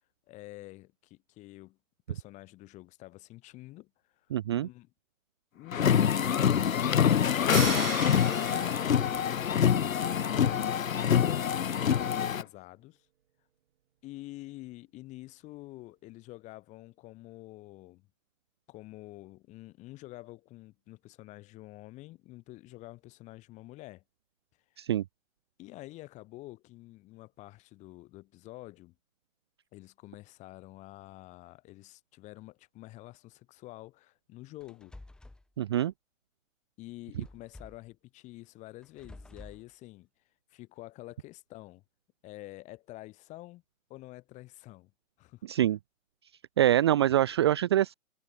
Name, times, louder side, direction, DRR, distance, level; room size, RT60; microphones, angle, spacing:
voice 1, 0.3-1.8 2.1-3.9 4.6-4.9 5.5-6.2 6.6-9.4 10.0-13.1 14.0-18.1 18.7-24.0 25.6-28.9 29.7-35.0 36.8-40.1 40.5-41.8 42.2-43.6 43.9-44.9 45.2-45.4, left 18 dB, 15° left, 6.3 m, -48 dB
voice 2, 4.3-4.7 24.8-25.0 35.6-35.9 45.4-45.8 46.6-47.9, right 12 dB, 20° right, 0.7 m, -25 dB
sound 1, 5.7-12.4, left 8 dB, 75° left, 1.9 m, -25 dB
sound 2, 7.5-9.7, right 10 dB, 45° right, 1.8 m, -37 dB
sound 3, 34.6-35.4 37.2-37.9 38.8-39.6, left 2 dB, ahead, 2.9 m, -50 dB
hypercardioid pair, 170°, 41 cm